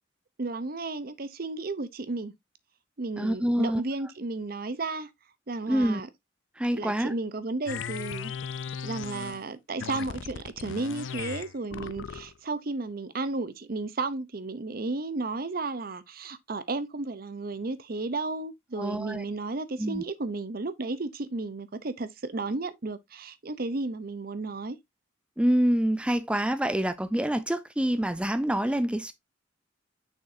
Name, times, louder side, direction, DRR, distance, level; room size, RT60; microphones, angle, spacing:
voice 1, 0.4-2.3 3.0-5.1 5.5-6.1 6.7-8.3 8.8-24.8, right 3 dB, 50° right, 0.7 m, -33 dB
voice 2, 3.2-3.8 5.7-6.0 6.6-7.1 18.8-19.2 19.8-20.0 25.4-29.1, right 1 dB, 5° right, 0.4 m, -26 dB
sound 1, 7.7-9.5 9.8-12.4, left 6 dB, 80° left, 0.5 m, -37 dB
6.4 x 6.2 x 2.7 m
head